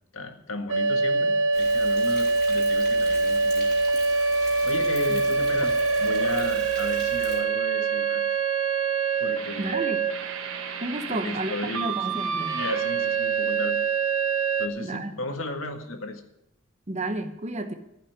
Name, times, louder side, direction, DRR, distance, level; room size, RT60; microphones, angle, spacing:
voice 1, 0.1-3.7 4.6-8.4 9.2-10.0 11.1-12.2 12.5-13.8 14.6-16.2, left 2 dB, 80° left, 5 dB, 1.9 m, -35 dB
sound 1, 0.7-14.7, right 4 dB, 85° right, 1.3 m, -25 dB
Thunder, 1.5-7.4, equal, 5° left, 3.3 m, -42 dB
voice 2, 9.6-10.1 10.8-12.6 14.8-15.1 16.9-17.7, right 2 dB, 35° right, 9 dB, 1.0 m, -32 dB
14.5 x 5.8 x 9.7 m, 0.81 s
head